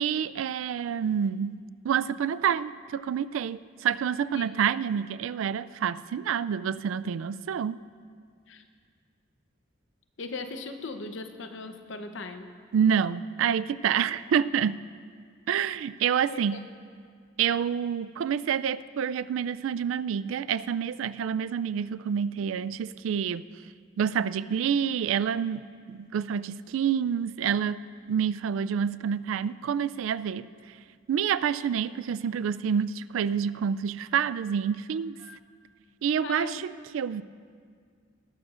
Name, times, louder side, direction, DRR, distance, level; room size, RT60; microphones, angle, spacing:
voice 1, 0.0-7.8 12.7-14.8 15.5-16.7 17.4-23.4 24.0-30.5 31.1-35.2 36.0-37.2, right 8 dB, 80° right, 16 dB, 0.3 m, -28 dB
voice 2, 10.2-12.5 16.3-16.6 35.2-35.4 36.2-36.6, left 3 dB, 65° left, 7 dB, 0.8 m, -38 dB
19.5 x 12.5 x 2.5 m, 2.1 s
head